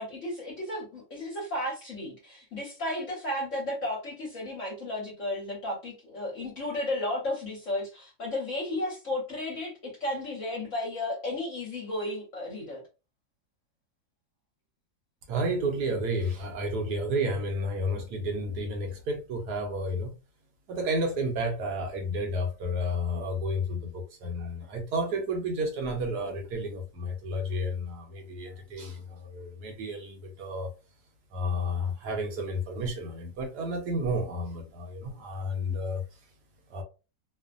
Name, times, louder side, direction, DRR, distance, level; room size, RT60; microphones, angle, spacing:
voice 1, 0.0-12.8, left 1 dB, 50° left, 1.1 m, -33 dB
voice 2, 15.3-20.1 20.7-30.7 31.3-36.0 36.7-36.8, equal, 70° right, 1.2 m, -31 dB
3.0 x 2.1 x 2.5 m
omnidirectional pair, 1.9 m